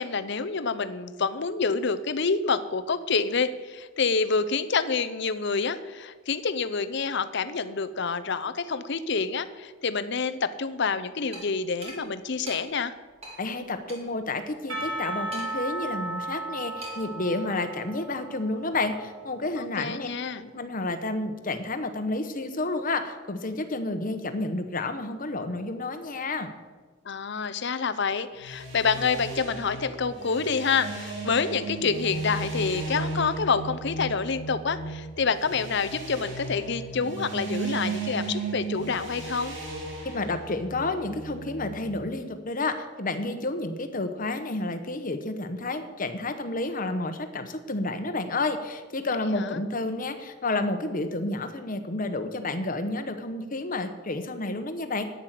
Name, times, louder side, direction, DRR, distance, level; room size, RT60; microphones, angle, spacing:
voice 1, 0.0-12.9 19.6-20.4 27.0-39.5 49.3-49.6, left 5 dB, 60° left, 12 dB, 0.7 m, -27 dB
sound 1, 11.3-11.5 11.8-12.0 12.5-12.6 13.2-13.4 13.9-14.0 15.3-15.7 16.8-17.1, right 1 dB, 30° right, 2.6 m, -41 dB
voice 2, 13.4-20.1 20.4-26.5 40.0-55.0, left 2 dB, 45° left, 8 dB, 1.1 m, -30 dB
Percussion / Church bell, 14.7-19.9, right 1 dB, 80° right, 3.8 m, -36 dB
sound 2, 28.4-42.0, right 3 dB, 65° right, 3.4 m, -35 dB
10.5 x 9.5 x 7.6 m, 1.4 s
head